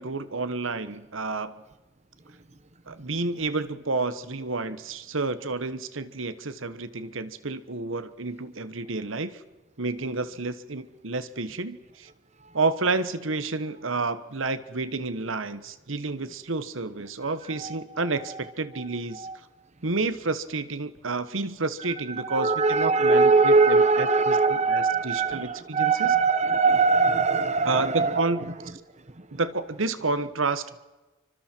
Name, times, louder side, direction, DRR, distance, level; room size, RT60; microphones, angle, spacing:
voice 1, 0.0-1.5 2.9-9.4 9.8-12.1 12.5-19.3 19.8-24.3 24.7-26.1 27.6-28.5 29.3-30.8, right 3 dB, 65° right, 13 dB, 1.3 m, -30 dB
voice 2, 17.2-18.4 18.7-18.9 19.1-19.4 22.1-28.5 29.0-29.4, right 4 dB, 35° right, 12 dB, 1.1 m, -23 dB
28.0 x 25.0 x 4.6 m, 1.2 s
head